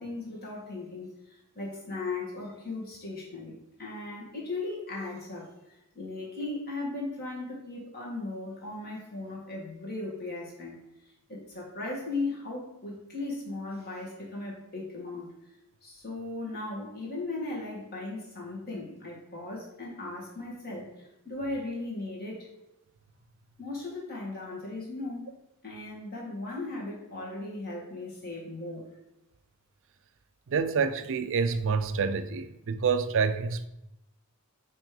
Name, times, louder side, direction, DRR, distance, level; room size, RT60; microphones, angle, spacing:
voice 1, 0.0-10.8 11.3-15.3 15.8-22.5 23.6-25.3 25.6-28.8, left 2 dB, 45° left, 2.0 m, -37 dB
voice 2, 30.5-33.7, right 5 dB, 60° right, 0.4 m, -27 dB
6.0 x 3.1 x 5.1 m
head